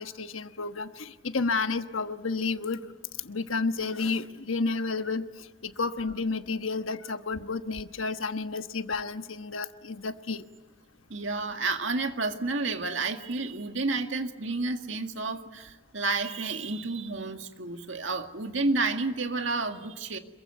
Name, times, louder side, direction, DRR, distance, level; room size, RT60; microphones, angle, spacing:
voice 1, 0.0-2.9 3.2-10.4, left 4 dB, 90° left, 9 dB, 1.2 m, -31 dB
voice 2, 11.1-20.2, right 3 dB, 70° right, 6 dB, 2.0 m, -30 dB
27.0 x 23.0 x 9.4 m, 1.2 s
head